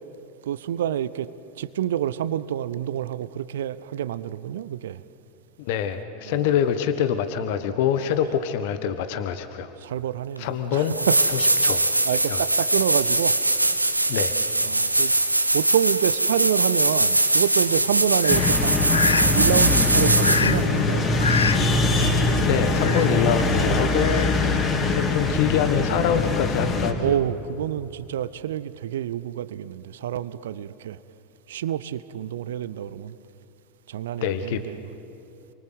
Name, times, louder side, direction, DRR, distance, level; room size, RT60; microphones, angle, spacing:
voice 1, 0.5-1.3 1.6-5.0 6.3-6.5 9.8-11.2 12.1-13.4 14.6-15.1 15.5-18.7 19.3-21.1 24.4-24.7 27.0-31.0 31.5-33.1 33.9-34.8, right 10 dB, 60° right, 0.7 m, -27 dB
voice 2, 5.6-9.7 10.4-11.0 11.3-11.8 12.3-12.4 14.1-14.3 21.9-27.1 34.2-34.6, left 9 dB, 50° left, 1.3 m, -25 dB
sound 1, 10.4-10.5 10.8-20.6 23.4-23.5, right 2 dB, 85° right, 1.2 m, -21 dB
Fowl, 17.6-24.6, left 5 dB, 75° left, 0.9 m, -30 dB
sound 2, 18.3-26.9, left 2 dB, 30° left, 3.6 m, -22 dB
29.0 x 24.0 x 8.0 m
figure-of-eight pair, 85°, 0 cm